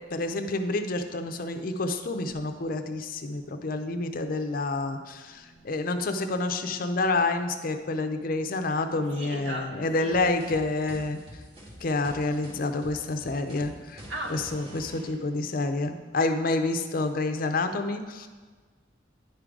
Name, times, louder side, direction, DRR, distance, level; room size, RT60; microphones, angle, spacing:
voice 1, 0.1-11.2 11.8-14.0 14.3-18.3, left 2 dB, 50° left, 7 dB, 0.5 m, -28 dB
voice 2, 5.3-5.8 9.1-10.1 11.5-12.0 14.0-14.4, right 1 dB, 75° right, -1 dB, 1.5 m, -39 dB
sound 1, 10.1-15.1, equal, 35° right, 2.0 m, -46 dB
10.0 x 3.8 x 4.7 m, 1.4 s
head